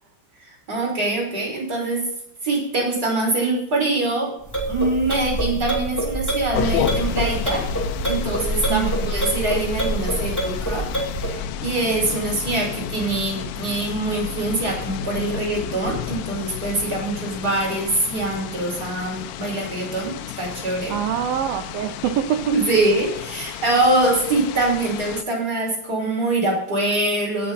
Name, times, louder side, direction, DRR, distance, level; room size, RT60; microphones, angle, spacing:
voice 1, 0.7-2.0 2.4-4.3 4.7-7.6 8.0-10.9 11.2-20.1 20.4-20.9 22.4-27.5, right 2 dB, 20° right, -2 dB, 5.4 m, -24 dB
sound 1, 4.4-11.4, right 1 dB, 5° left, 1.5 m, -26 dB
sound 2, 6.5-25.2, left 9 dB, 85° left, 3.0 m, -31 dB
voice 2, 8.7-9.1 20.9-22.6, right 10 dB, 90° right, 6 dB, 2.0 m, -25 dB
17.5 x 6.9 x 4.1 m, 0.72 s
omnidirectional pair, 5.3 m